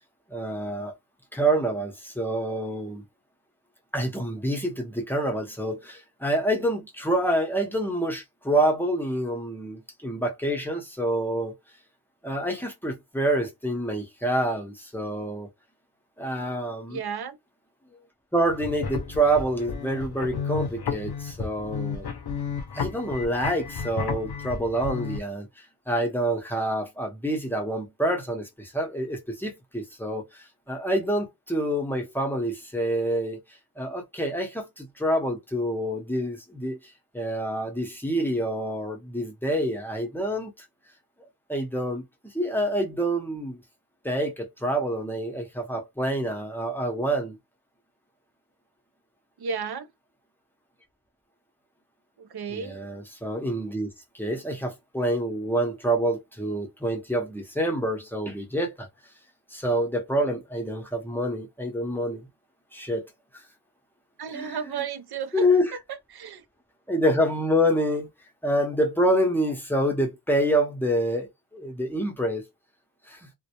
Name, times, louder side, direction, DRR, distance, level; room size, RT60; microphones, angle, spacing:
voice 1, 0.3-0.9 1.3-3.0 3.9-11.5 12.2-15.5 16.2-17.0 18.3-22.1 22.7-25.5 25.9-33.4 33.8-36.8 37.1-40.5 41.5-43.6 44.0-47.4 52.5-53.9 54.1-58.9 59.5-62.3 62.7-63.1 64.3-64.6 65.3-65.7 66.9-68.1 68.4-72.4 73.1-73.3, right 1 dB, 5° left, 0.7 m, -27 dB
voice 2, 16.9-17.4 49.4-49.9 52.2-52.8 64.2-65.5 65.9-66.4, right 6 dB, 70° right, 0.5 m, -33 dB
sound 1, 18.4-25.2, left 6 dB, 70° left, 0.5 m, -32 dB
2.1 x 2.1 x 2.8 m
wide cardioid pair, 55°, 40 cm